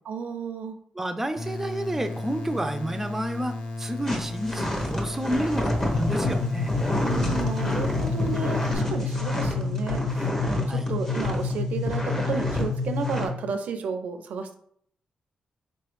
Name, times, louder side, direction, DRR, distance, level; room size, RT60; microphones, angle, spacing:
voice 1, 0.1-0.8 7.0-14.6, right 5 dB, 80° right, 8 dB, 0.5 m, -32 dB
voice 2, 0.9-6.7 10.7-10.9, right 1 dB, 15° right, 7 dB, 0.5 m, -30 dB
sound 1, 1.4-8.8, left 2 dB, 45° left, 0.9 m, -34 dB
sound 2, 4.1-11.5 11.9-12.6 13.0-13.3, equal, 20° left, 1.1 m, -30 dB
sound 3, 5.9-13.5, left 4 dB, 70° left, 0.3 m, -29 dB
4.4 x 3.1 x 3.1 m, 0.65 s
cardioid pair, 95°, 2 cm